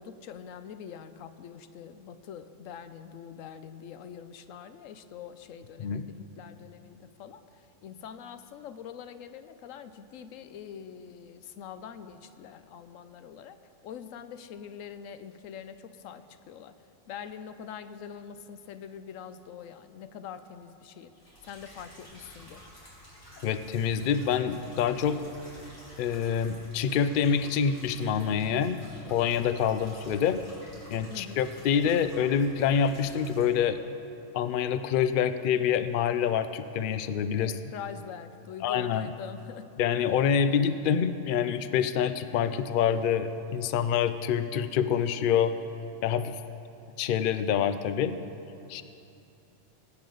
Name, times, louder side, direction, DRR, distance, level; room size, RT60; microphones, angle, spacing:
voice 1, 0.0-7.4 7.8-16.7 17.1-21.1 21.4-22.7 31.1-31.5 37.3-39.6, left 8 dB, 90° left, 11 dB, 1.0 m, -44 dB
sound 1, 21.1-33.6, equal, 45° left, 3.3 m, -51 dB
voice 2, 23.4-25.2 26.0-30.4 30.9-33.8 34.3-37.5 38.6-39.1 39.8-45.6 46.0-46.4 47.0-48.2 48.7-48.8, left 7 dB, 60° left, 11 dB, 0.6 m, -26 dB
20.5 x 9.1 x 3.9 m, 2.8 s
omnidirectional pair, 1.3 m